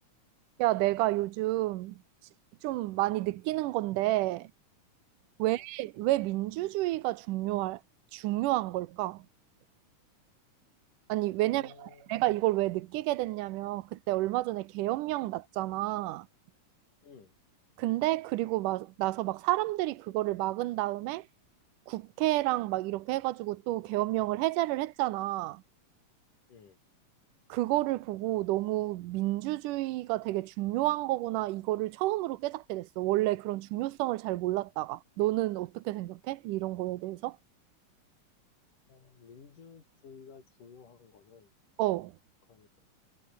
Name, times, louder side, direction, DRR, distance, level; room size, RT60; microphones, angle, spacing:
voice 1, 0.6-2.0 2.6-4.5 5.4-7.8 8.1-9.2 11.1-16.3 17.8-21.2 21.9-25.6 27.5-37.4 41.8-42.1, right 17 dB, 85° right, 2.3 m, -30 dB
voice 2, 11.5-12.1 17.0-17.3 26.5-26.8 38.9-41.5 42.5-42.8, left 6 dB, 80° left, 5.7 m, -54 dB
omnidirectional pair, 3.6 m